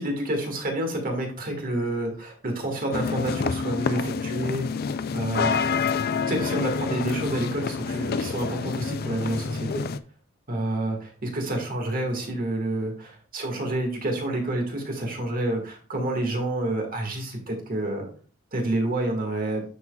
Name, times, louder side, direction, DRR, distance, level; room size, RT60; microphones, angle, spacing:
voice 1, 0.0-4.7 5.1-5.7 6.3-9.8 10.5-18.1 18.5-19.6, right 1 dB, 45° right, 2 dB, 1.8 m, -28 dB
sound 1, 2.9-10.0, left 5 dB, 50° left, 0.4 m, -28 dB
9.8 x 6.1 x 2.3 m, 0.40 s
head